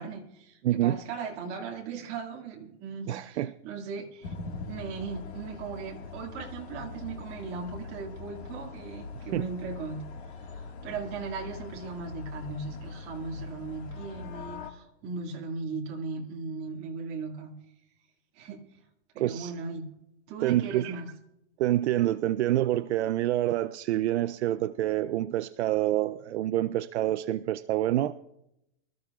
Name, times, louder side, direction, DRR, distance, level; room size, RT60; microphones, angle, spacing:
voice 1, 0.0-4.3 4.7-10.0 10.5-17.5 18.3-18.8 19.1-19.9 20.3-21.1, right 4 dB, 25° right, -1 dB, 2.1 m, -38 dB
voice 2, 0.6-1.0 3.1-3.5 9.2-9.5 19.2-19.5 20.4-21.0 21.6-28.1, right 13 dB, 65° right, 13 dB, 0.5 m, -27 dB
sound 1, 4.2-14.7, left 4 dB, 60° left, 1.8 m, -42 dB
24.5 x 14.0 x 2.4 m, 0.84 s
supercardioid pair, 175°, 36 cm